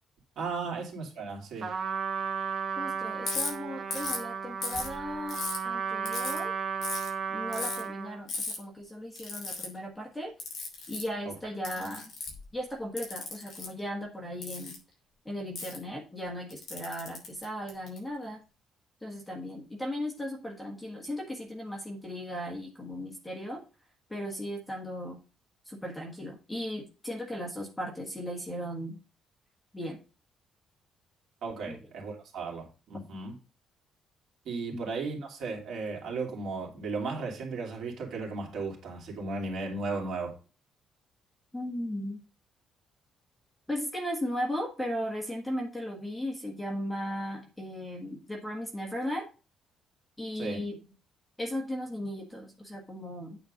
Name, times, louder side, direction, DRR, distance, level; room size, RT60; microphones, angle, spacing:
voice 1, 0.4-1.7 11.2-11.3 31.4-33.3 34.4-40.3 50.4-50.6, right 4 dB, 55° right, 0 dB, 3.0 m, -35 dB
Trumpet, 1.6-8.2, right 6 dB, 35° right, 1.2 m, -34 dB
voice 2, 2.8-5.4 5.6-6.5 7.3-10.3 10.9-12.1 12.5-14.8 15.2-18.4 19.0-23.6 24.1-25.2 25.6-29.0 29.7-30.0 31.7-31.8 34.7-34.9 41.5-42.2 43.7-49.2 50.2-50.8 51.4-53.4, equal, 5° left, -1 dB, 1.6 m, -36 dB
Ratchet pawl, 3.2-3.5 3.9-4.2 4.6-5.6 6.0-6.4 6.8-7.1 7.5-7.8 8.3-8.5 9.1-9.7 10.4-11.1 11.6-12.4 13.0-13.7 14.4-14.7 15.5-15.8 16.5-18.0, left 4 dB, 45° left, 4.9 m, -35 dB
9.0 x 4.5 x 5.3 m, 0.33 s
cardioid pair, 180°, 0 cm